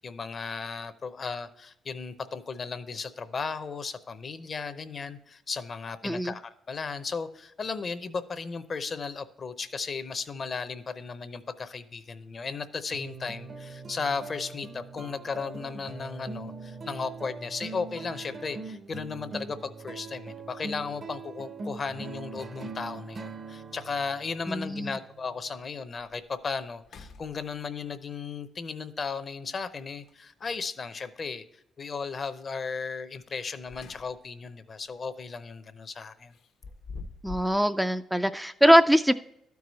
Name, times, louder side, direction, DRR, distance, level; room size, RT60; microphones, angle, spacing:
voice 1, 0.0-31.4 31.8-36.3, left 5 dB, 40° left, 12 dB, 0.6 m, -35 dB
sound 1, 12.9-25.7, right 4 dB, 45° right, 0.6 m, -42 dB
sound 2, 23.7-24.3 24.8-24.9 25.5-25.6 26.0-26.3 26.8-27.9 30.0-30.6 33.4-34.4 34.8-35.0 36.3-37.6, left 3 dB, 70° left, 0.8 m, -46 dB
voice 2, 24.5-25.0 37.2-39.1, equal, 5° right, 8 dB, 0.3 m, -22 dB
12.0 x 4.7 x 4.1 m, 0.79 s
cardioid pair, 90°, 0 cm